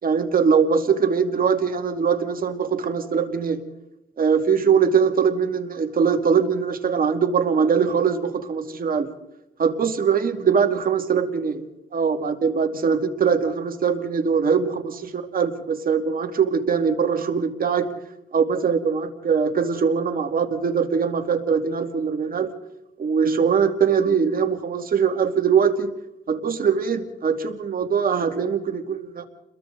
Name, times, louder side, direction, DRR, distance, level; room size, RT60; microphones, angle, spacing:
voice 1, 0.0-3.6 4.2-9.1 9.6-11.6 11.9-17.9 18.3-22.5 23.0-25.9 26.3-29.2, right 6 dB, 45° right, 5 dB, 2.3 m, -22 dB
30.0 x 22.0 x 4.0 m, 0.91 s
cardioid pair, 90°, 20 cm